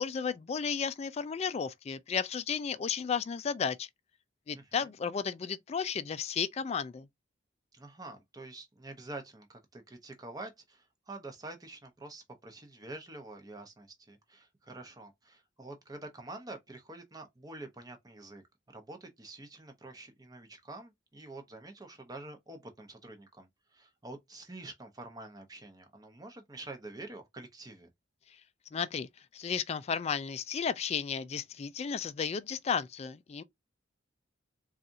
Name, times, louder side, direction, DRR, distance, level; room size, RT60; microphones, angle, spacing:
voice 1, 0.0-3.9 4.5-7.1 28.7-29.1 29.3-33.4, left 6 dB, 35° left, 0.3 m, -33 dB
voice 2, 4.5-4.9 7.7-18.4 18.7-27.9, right 2 dB, 20° right, 0.8 m, -47 dB
4.0 x 2.4 x 2.6 m
head